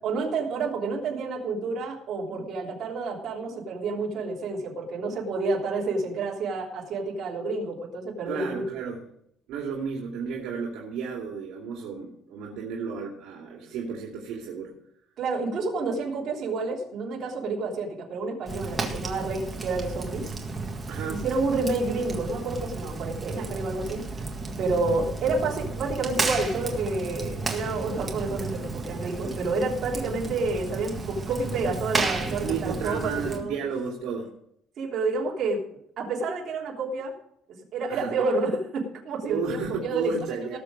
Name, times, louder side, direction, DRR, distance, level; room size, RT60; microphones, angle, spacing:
voice 1, 0.0-8.6 15.2-20.3 21.1-24.3 24.6-33.5 34.8-35.6 36.0-37.1 37.7-40.6, right 3 dB, 45° right, -3 dB, 3.4 m, -29 dB
voice 2, 8.3-9.0 9.5-14.7 20.9-21.2 32.4-34.3 37.9-38.1 39.2-40.6, right 6 dB, 75° right, 0 dB, 2.5 m, -33 dB
Fire, 18.5-33.4, right 3 dB, 15° right, 1.7 m, -33 dB
18.0 x 7.0 x 5.1 m, 0.72 s
cardioid pair, 170°, 0 cm